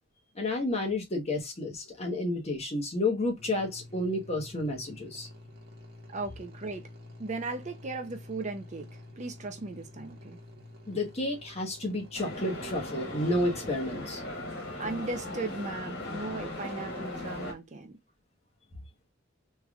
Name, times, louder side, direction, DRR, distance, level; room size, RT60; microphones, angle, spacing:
voice 1, 0.3-5.3 10.9-14.2, left 2 dB, 30° left, 1.2 m, -31 dB
sound 1, 3.4-13.8, left 1 dB, 55° right, 1.4 m, -50 dB
voice 2, 6.1-6.9 7.2-10.4 14.8-18.0, right 3 dB, 35° right, 0.6 m, -37 dB
sound 2, 12.1-17.5, left 1 dB, 50° left, 1.8 m, -38 dB
3.4 x 3.3 x 2.3 m
head